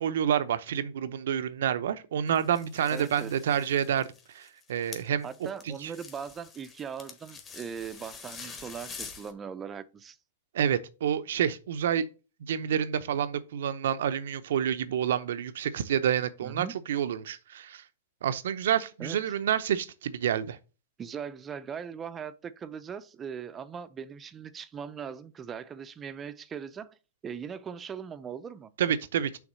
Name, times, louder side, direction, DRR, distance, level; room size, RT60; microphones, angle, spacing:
voice 1, 0.0-5.3 5.7-5.9 10.5-12.0 12.4-17.8 18.2-20.6 28.8-29.4, right 9 dB, 75° right, 0.7 m, -28 dB
sound 1, 2.3-9.3, left 5 dB, 25° left, 1.3 m, -46 dB
voice 2, 2.9-3.4 5.2-10.2 16.4-16.7 19.0-19.2 21.0-27.0 27.2-28.7, right 7 dB, 20° right, 0.5 m, -40 dB
6.0 x 3.5 x 5.5 m
hypercardioid pair, 130°, 0 cm